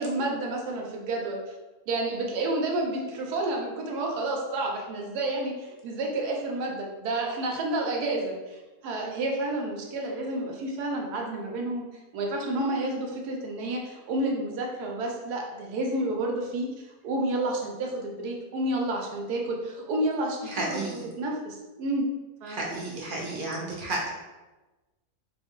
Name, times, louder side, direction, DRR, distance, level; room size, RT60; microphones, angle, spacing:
voice 1, 0.0-1.4 1.9-11.8 12.1-16.7 17.0-22.1 22.4-22.7, right 2 dB, 85° right, 0 dB, 1.2 m, -30 dB
voice 2, 20.4-21.0 22.5-24.1, right 2 dB, 45° right, -3 dB, 0.7 m, -32 dB
3.7 x 2.5 x 3.6 m, 1.1 s
omnidirectional pair, 1.6 m